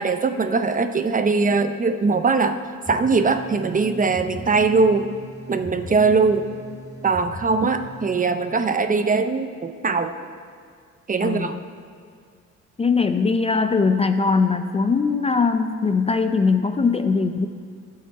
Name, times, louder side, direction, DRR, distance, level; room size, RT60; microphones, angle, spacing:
voice 1, 0.0-2.6 2.9-5.1 5.5-6.4 7.0-10.1 11.1-11.5, right 4 dB, 25° right, 9 dB, 0.5 m, -21 dB
sound 1, 2.8-8.2, equal, 10° right, 1.2 m, -40 dB
voice 2, 11.2-11.6 12.8-17.5, left 4 dB, 20° left, 8 dB, 0.4 m, -21 dB
12.5 x 7.6 x 4.4 m, 2.2 s
cardioid pair, 90°, 30 cm